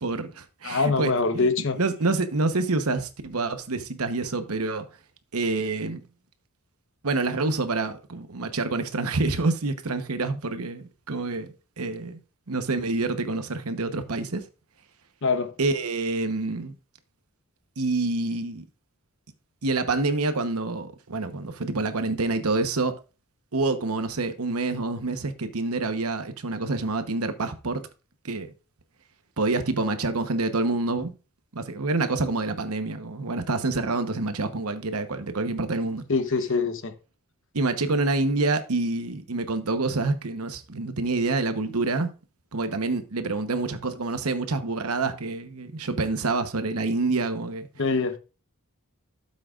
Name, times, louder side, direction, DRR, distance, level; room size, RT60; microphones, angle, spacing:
voice 1, 0.0-1.5 1.8-4.9 5.3-6.0 7.0-12.2 12.5-14.4 15.6-16.7 17.8-18.6 19.6-23.0 23.5-27.8 28.2-28.5 29.4-31.1 31.5-36.0 37.5-42.1 42.5-47.7, right 3 dB, 80° right, 1.0 m, -27 dB
voice 2, 0.6-1.8 15.2-15.5 36.1-36.9 47.8-48.2, left 4 dB, 60° left, 1.0 m, -24 dB
12.5 x 7.6 x 2.5 m
head